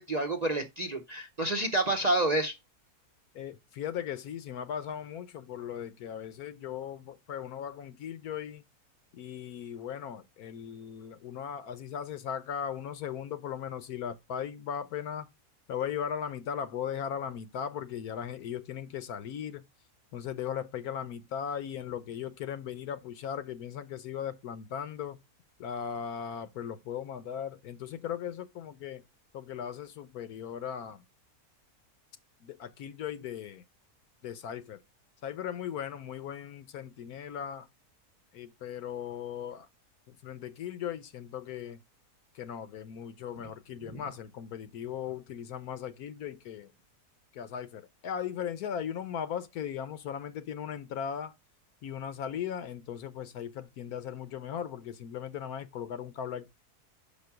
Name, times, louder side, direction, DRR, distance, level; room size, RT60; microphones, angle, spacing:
voice 1, 0.0-2.5 43.9-44.0, right 2 dB, 35° right, 0.7 m, -29 dB
voice 2, 3.3-8.6 9.1-15.3 15.7-19.6 20.1-25.2 25.6-29.0 29.3-31.0 32.4-33.6 34.2-34.8 35.2-37.7 38.3-39.7 40.1-41.8 42.3-46.7 47.3-51.3 51.8-56.5, left 8 dB, 75° left, 1.3 m, -38 dB
5.8 x 5.3 x 5.8 m
omnidirectional pair, 1.6 m